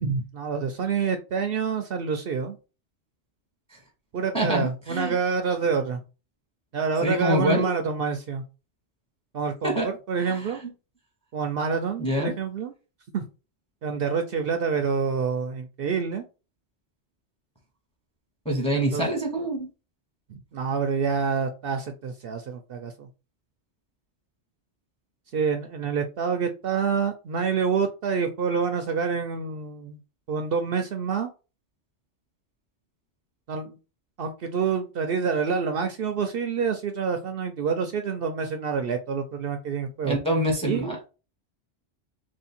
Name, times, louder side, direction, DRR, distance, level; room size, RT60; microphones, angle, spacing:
voice 1, 0.0-2.6 4.1-6.0 6.7-8.4 9.3-10.6 11.3-12.7 13.1-13.3 13.8-16.2 18.7-19.1 20.3-23.1 25.3-30.0 30.3-31.3 33.5-33.8 34.2-40.2 40.6-41.0, right 5 dB, 60° right, 6 dB, 0.7 m, -27 dB
voice 2, 4.3-5.2 7.0-7.7 9.6-9.9 10.2-10.5 12.0-12.3 18.4-19.7 40.0-41.0, equal, 5° left, 1 dB, 1.0 m, -25 dB
3.0 x 2.8 x 4.2 m, 0.31 s
omnidirectional pair, 1.2 m